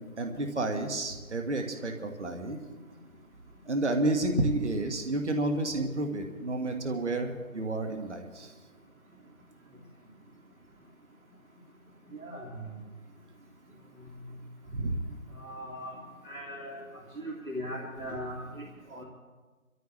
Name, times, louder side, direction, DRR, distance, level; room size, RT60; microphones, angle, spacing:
voice 1, 0.0-2.6 3.6-8.5 14.7-15.1, right 2 dB, 55° right, 4 dB, 1.6 m, -30 dB
voice 2, 12.1-12.6 15.4-16.0 16.2-16.8 17.2-19.0, equal, 80° right, -2 dB, 2.6 m, -39 dB
23.0 x 14.0 x 3.2 m, 1.3 s
figure-of-eight pair, 170°, 41 cm